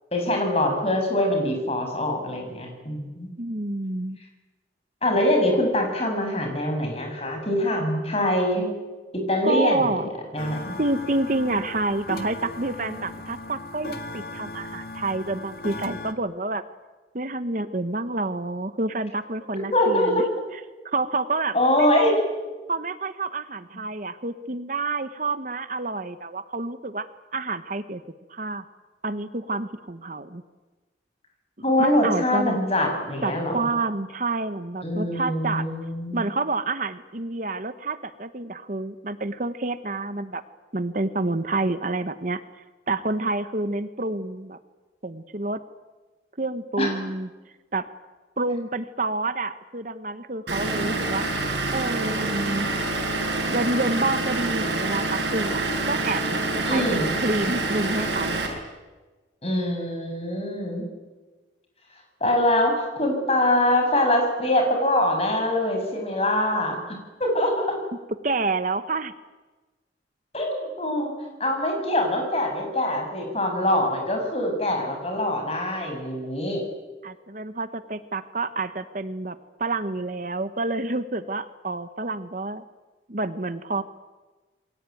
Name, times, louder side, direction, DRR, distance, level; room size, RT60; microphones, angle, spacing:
voice 1, 0.1-3.3 5.0-8.7 9.1-10.8 19.7-20.3 21.5-22.1 31.6-33.7 34.8-36.2 46.8-47.0 56.7-57.1 59.4-60.8 62.2-66.8 67.2-67.8 70.3-71.1 71.4-76.6, left 1 dB, 35° left, 3 dB, 6.6 m, -24 dB
voice 2, 3.4-4.2 9.4-10.1 10.8-16.6 17.1-20.3 20.8-22.1 22.7-27.1 27.3-28.0 28.3-28.6 29.0-30.4 31.8-32.6 33.2-35.7 36.1-40.4 40.7-42.4 42.9-44.6 45.0-45.6 46.4-47.3 47.7-47.9 48.4-51.2 51.7-52.7 53.5-58.4 68.2-69.1 77.0-82.6 83.1-83.8, right 2 dB, 45° right, 11 dB, 1.1 m, -28 dB
sound 1, 10.4-16.1, left 2 dB, 55° left, 2.0 m, -37 dB
Vehicle / Engine, 50.5-58.5, right 2 dB, 75° right, 7.4 m, -26 dB
28.5 x 22.5 x 9.3 m, 1.2 s
head